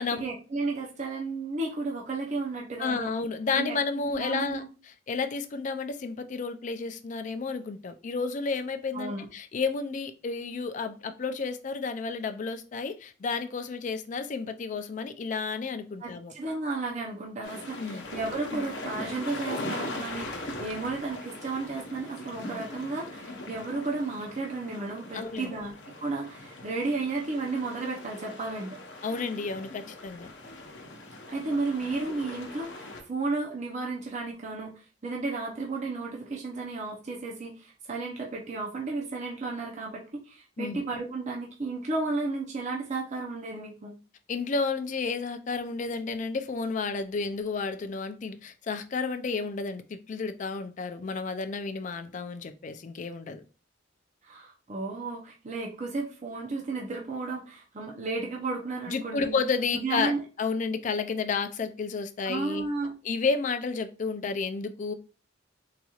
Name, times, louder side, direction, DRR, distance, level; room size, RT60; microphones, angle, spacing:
voice 1, 0.0-3.1 3.5-3.8 4.0-4.7 8.9-9.3 16.0-28.8 31.3-43.9 54.2-59.4 59.7-60.2 62.2-62.9, right 3 dB, 40° right, 0.6 m, -33 dB
voice 2, 2.8-4.6 5.1-16.3 17.8-18.1 25.1-25.6 29.0-30.3 40.6-40.8 44.3-53.4 58.9-60.1 60.4-62.6 63.0-64.9, left 4 dB, 40° left, 0.4 m, -31 dB
sound 1, 17.4-33.0, left 2 dB, 65° left, 0.7 m, -40 dB
4.0 x 2.9 x 2.3 m
head